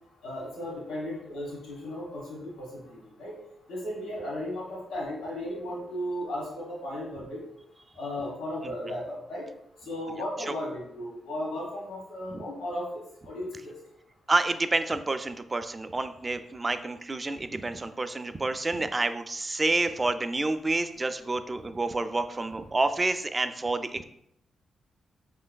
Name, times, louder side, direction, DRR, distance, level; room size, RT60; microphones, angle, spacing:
voice 1, 0.2-3.4 3.7-7.4 8.0-9.5 9.8-12.9 13.2-13.7, left 1 dB, 90° left, -5 dB, 1.3 m, -35 dB
voice 2, 14.3-24.0, right 2 dB, 30° right, 10 dB, 0.3 m, -28 dB
5.1 x 3.2 x 2.2 m, 0.74 s
supercardioid pair, 50°, 0 cm